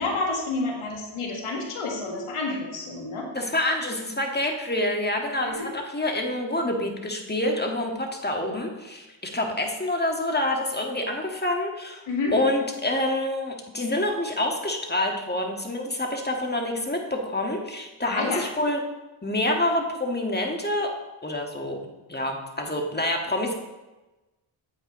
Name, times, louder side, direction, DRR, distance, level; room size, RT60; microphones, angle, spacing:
voice 1, 0.0-3.3 5.6-5.7 12.1-12.4 18.0-18.4, left 3 dB, 80° left, 0 dB, 1.9 m, -29 dB
voice 2, 3.3-12.0 12.3-18.8 19.2-20.9 21.2-21.8 22.1-23.5, left 1 dB, 20° left, 1 dB, 2.0 m, -27 dB
9.2 x 7.9 x 3.2 m, 1.1 s
cardioid pair, 50°, 50 cm